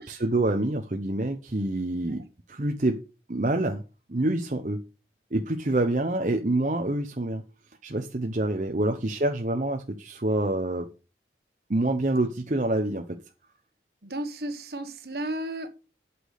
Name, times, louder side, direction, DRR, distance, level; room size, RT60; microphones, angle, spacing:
voice 1, 0.1-2.2 2.5-3.0 3.3-3.8 4.1-4.8 5.3-7.4 7.8-10.9 11.7-13.2, right 1 dB, 45° right, 0.9 m, -26 dB
voice 2, 14.0-15.7, right 1 dB, 60° right, 1.4 m, -34 dB
8.3 x 6.1 x 6.6 m
head